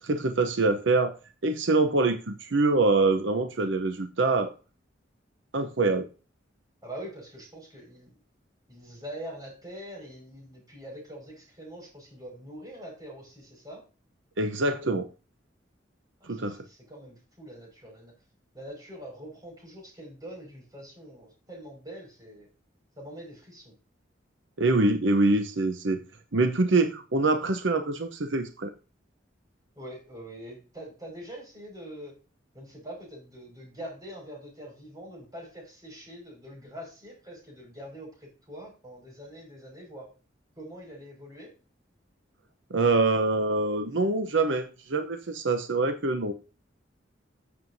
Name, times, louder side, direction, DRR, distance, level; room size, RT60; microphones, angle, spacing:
voice 1, 0.0-1.2 1.4-4.5 5.5-6.1 14.4-15.1 16.2-16.6 24.6-26.0 26.3-28.7 42.7-46.3, right 3 dB, 75° right, 7 dB, 0.8 m, -25 dB
voice 2, 6.8-8.1 8.7-13.8 16.2-18.1 18.5-22.5 23.0-23.7 29.8-32.1 32.5-40.1 40.6-41.5, right 1 dB, 20° right, 0 dB, 5.4 m, -44 dB
13.5 x 7.5 x 2.7 m, 0.33 s
head